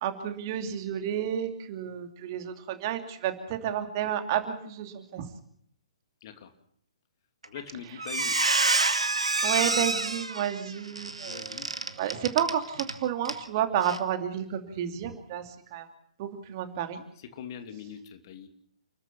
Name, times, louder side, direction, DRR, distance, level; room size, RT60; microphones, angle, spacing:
voice 1, 0.0-5.3 9.4-11.7 12.0-15.9 16.2-17.0, right 9 dB, 35° right, 7 dB, 2.8 m, -31 dB
voice 2, 6.2-6.5 7.5-8.4 11.2-11.7 17.2-18.5, left 8 dB, 40° left, 7 dB, 2.9 m, -42 dB
Squeak, 7.4-7.7 8.0-12.9 13.2-13.4 13.8-14.0, right 3 dB, 75° right, 2.1 m, -27 dB
29.5 x 14.0 x 7.0 m, 0.67 s
figure-of-eight pair, 125°, 3 cm